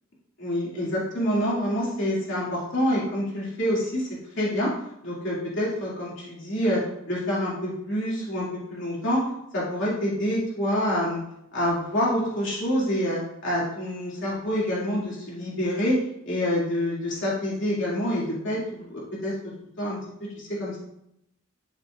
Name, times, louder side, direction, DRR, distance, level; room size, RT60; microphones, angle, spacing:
voice 1, 0.4-4.1 4.4-4.7 5.0-6.8 7.1-9.2 9.5-11.2 11.5-16.0 16.3-19.3 19.8-20.0 20.4-20.8, equal, 65° left, -6 dB, 2.7 m, -27 dB
12.0 x 5.6 x 2.6 m, 0.79 s
head